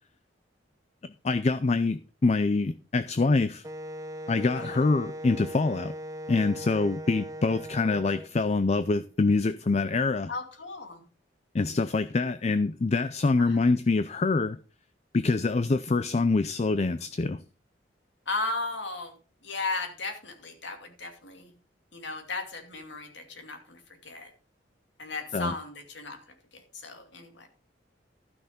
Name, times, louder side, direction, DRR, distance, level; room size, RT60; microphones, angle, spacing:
voice 1, 1.2-3.6 4.3-5.9 6.3-10.3 11.5-14.6 15.1-17.4 25.3-25.5, left 3 dB, 35° left, 0.4 m, -25 dB
Wind instrument woodwind instrument, 3.6-8.3, equal, 20° right, 0.7 m, -39 dB
voice 2, 4.5-4.8 10.3-11.0 13.4-13.6 18.3-19.1 19.4-21.5 21.9-24.3 25.0-26.2 26.5-27.5, left 3 dB, 75° left, 2.6 m, -36 dB
12.5 x 6.1 x 5.1 m
head